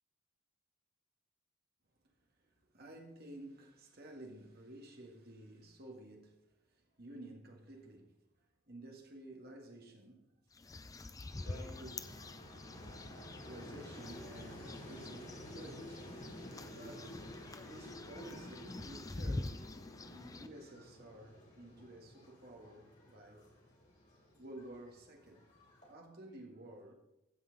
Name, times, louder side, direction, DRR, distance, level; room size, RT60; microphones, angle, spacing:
voice 1, 2.4-6.4 6.7-8.1 8.7-10.3 11.0-11.1 11.4-12.1 13.5-16.1 16.5-17.2 17.6-19.6 20.1-23.5 24.3-25.4 25.9-26.9, right 1 dB, 45° right, 1.7 m, -53 dB
sound 1, 10.5-20.5, left 2 dB, 15° left, 0.4 m, -46 dB
sound 2, 11.3-25.9, left 1 dB, 35° left, 3.9 m, -52 dB
15.5 x 5.7 x 4.0 m
head